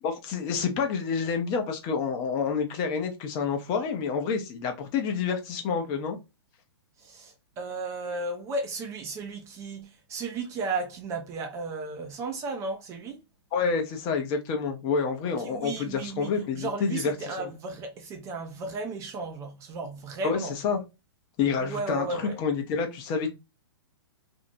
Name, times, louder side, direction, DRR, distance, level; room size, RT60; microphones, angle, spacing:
voice 1, 0.0-6.2 13.5-17.1 20.2-20.4 20.6-20.8 21.4-22.0 22.4-23.3, left 5 dB, 30° left, 0.6 m, -28 dB
voice 2, 7.0-13.2 15.2-20.6 21.6-22.4, right 3 dB, 20° right, 0.4 m, -34 dB
2.6 x 2.0 x 2.5 m
hypercardioid pair, 135°, 14 cm